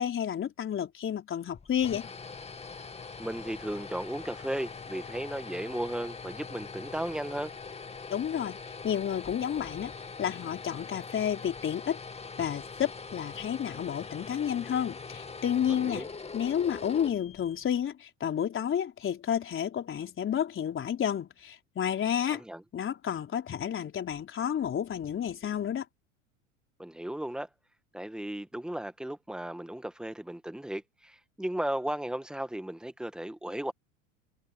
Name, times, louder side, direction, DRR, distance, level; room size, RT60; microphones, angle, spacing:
voice 1, 0.0-2.1 8.1-9.9 10.2-12.0 12.4-16.1 16.3-22.4 22.7-25.8, left 9 dB, 35° left, 4.3 m, -31 dB
sound 1, 1.5-17.8, left 4 dB, 15° left, 2.5 m, -43 dB
voice 2, 3.2-7.5 15.7-16.1 22.3-22.6 26.8-27.5 27.9-33.7, right 1 dB, ahead, 2.0 m, -35 dB
hypercardioid pair, 95°, 38 cm